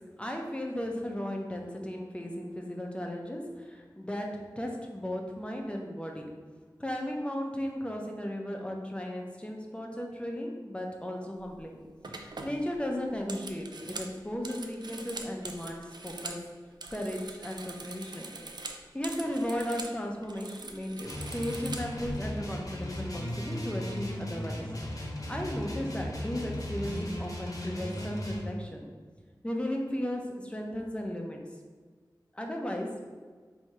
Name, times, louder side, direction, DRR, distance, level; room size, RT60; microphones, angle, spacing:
voice 1, 0.2-4.3 4.6-6.3 6.8-11.8 12.1-16.4 16.9-18.3 18.9-24.7 25.3-28.9 29.4-31.4 32.3-32.9, equal, 15° left, 1 dB, 0.6 m, -35 dB
sound 1, 11.4-11.6 12.0-16.4 16.7-20.0 20.2-22.1, right 3 dB, 65° right, 0.4 m, -43 dB
sound 2, 21.0-28.5, left 1 dB, 50° left, 0.9 m, -36 dB
3.1 x 2.7 x 4.5 m, 1.5 s
wide cardioid pair, 65°, 8 cm